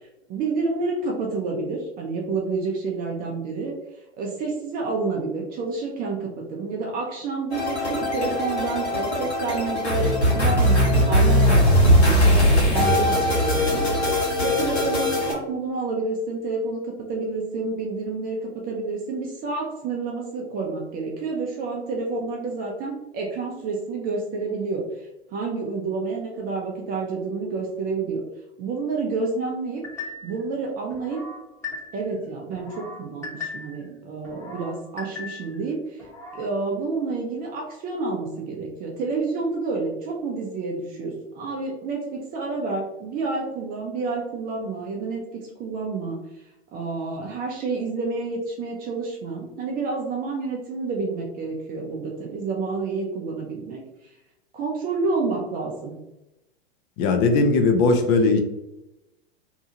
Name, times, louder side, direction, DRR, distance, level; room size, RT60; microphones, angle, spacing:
voice 1, 0.3-3.8 4.2-28.2 28.6-29.8 30.2-31.2 31.9-36.1 36.3-46.2 46.7-54.1 54.5-55.9, right 3 dB, 30° right, -1 dB, 0.5 m, -29 dB
sound 1, 7.5-15.3, equal, 90° left, 1.1 m, -20 dB
sound 2, 29.8-30.4 30.9-32.1 32.5-33.8 34.2-35.6 36.0-36.5, left 4 dB, 10° left, 0.9 m, -38 dB
voice 2, 57.0-58.4, left 3 dB, 40° left, 6 dB, 0.6 m, -19 dB
2.7 x 2.3 x 2.7 m, 0.95 s
hypercardioid pair, 100°, 32 cm